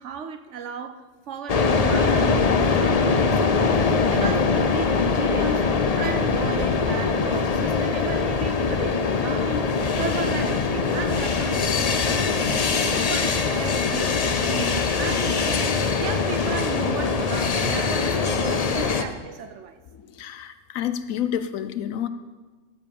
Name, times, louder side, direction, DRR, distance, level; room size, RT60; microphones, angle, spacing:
voice 1, 0.0-3.8 4.1-9.7 9.9-15.7 16.0-19.8, right 7 dB, 65° right, 0.9 m, -35 dB
sound 1, 1.5-19.0, left 4 dB, 45° left, 0.5 m, -22 dB
voice 2, 20.0-22.1, left 10 dB, 75° left, 1.1 m, -29 dB
14.0 x 5.3 x 7.2 m
omnidirectional pair, 1.5 m